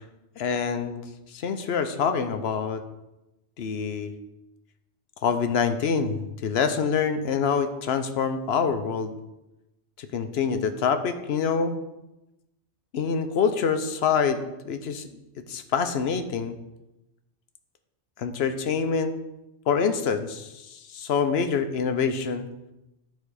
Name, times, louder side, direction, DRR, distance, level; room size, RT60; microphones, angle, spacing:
voice 1, 0.4-1.0 1.3-2.8 3.6-4.1 5.2-9.1 10.0-11.7 12.9-15.1 15.5-16.6 18.2-19.1 19.7-22.5, left 6 dB, 65° left, 8 dB, 0.9 m, -26 dB
11.0 x 4.2 x 4.8 m, 0.96 s
omnidirectional pair, 1.2 m